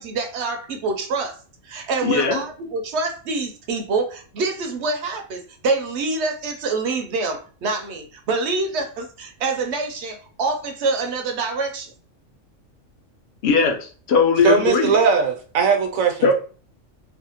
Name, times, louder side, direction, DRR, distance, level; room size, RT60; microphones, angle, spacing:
voice 1, 0.0-1.4 1.6-11.9, right 3 dB, 65° right, 0.8 m, -26 dB
voice 2, 2.0-2.4 13.4-14.9 16.2-16.3, left 5 dB, 55° left, 0.9 m, -19 dB
voice 3, 14.4-16.3, right 6 dB, 85° right, 1.1 m, -19 dB
3.4 x 2.1 x 2.8 m
omnidirectional pair, 1.4 m